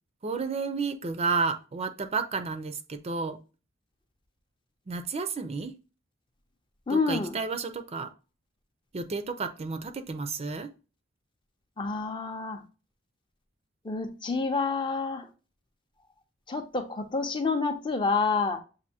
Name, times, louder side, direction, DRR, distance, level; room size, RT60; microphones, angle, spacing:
voice 1, 0.2-3.4 4.9-5.7 6.9-8.1 8.9-10.7, right 4 dB, 30° right, 8 dB, 0.4 m, -31 dB
voice 2, 6.9-7.4 11.8-12.6 13.8-15.3 16.5-18.6, left 4 dB, 25° left, 5 dB, 0.6 m, -28 dB
7.2 x 2.6 x 2.8 m, 0.33 s
head